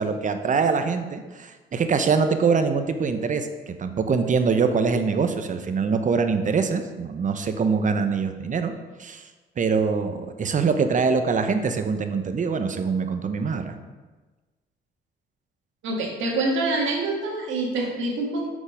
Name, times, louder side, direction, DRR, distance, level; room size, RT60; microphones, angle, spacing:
voice 1, 0.0-8.7 9.0-9.2 9.6-13.8, right 5 dB, 40° right, 8 dB, 0.8 m, -24 dB
voice 2, 15.8-18.5, right 2 dB, 85° right, -1 dB, 1.8 m, -26 dB
6.5 x 5.4 x 4.9 m, 1.3 s
cardioid pair, 90°, 20 cm